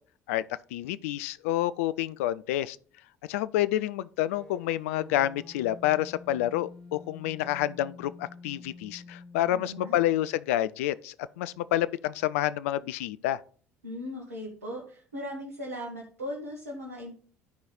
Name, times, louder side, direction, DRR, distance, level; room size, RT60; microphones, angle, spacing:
voice 1, 0.7-2.8 3.3-13.4, left 13 dB, 70° left, 0.4 m, -28 dB
sound 1, 4.3-10.3, left 3 dB, 10° left, 2.4 m, -49 dB
voice 2, 9.5-10.0 13.8-17.2, left 1 dB, 85° right, 1.5 m, -38 dB
11.5 x 4.7 x 4.0 m
figure-of-eight pair, 55°, 8 cm